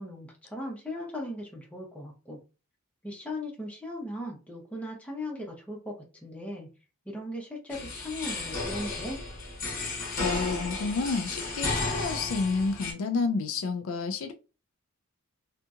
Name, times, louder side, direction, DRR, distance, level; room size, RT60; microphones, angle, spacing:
voice 1, 0.0-2.4 3.0-5.9 6.2-6.7 7.1-9.2, left 1 dB, 5° left, 0.8 m, -38 dB
sound 1, 7.7-12.9, left 3 dB, 40° left, 0.9 m, -33 dB
voice 2, 10.2-14.3, left 4 dB, 60° left, 0.3 m, -30 dB
2.7 x 2.6 x 2.4 m
head